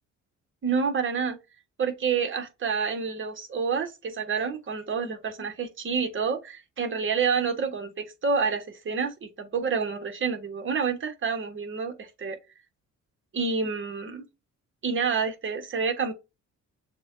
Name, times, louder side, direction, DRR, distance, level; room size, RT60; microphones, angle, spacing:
voice 1, 0.6-1.4 1.8-12.4 13.3-14.2 14.8-16.1, right 5 dB, 40° right, 1.1 m, -28 dB
6.5 x 2.2 x 2.5 m
cardioid pair, 90°, 30 cm